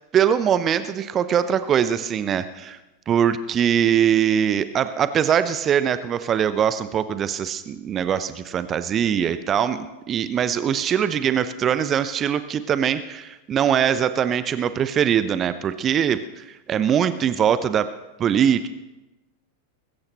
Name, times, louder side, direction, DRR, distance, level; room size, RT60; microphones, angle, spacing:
voice 1, 0.1-2.8 3.1-17.9 18.2-18.7, right 8 dB, 25° right, 13 dB, 0.7 m, -22 dB
21.0 x 16.0 x 3.0 m, 1.0 s
figure-of-eight pair, 90°, 0 cm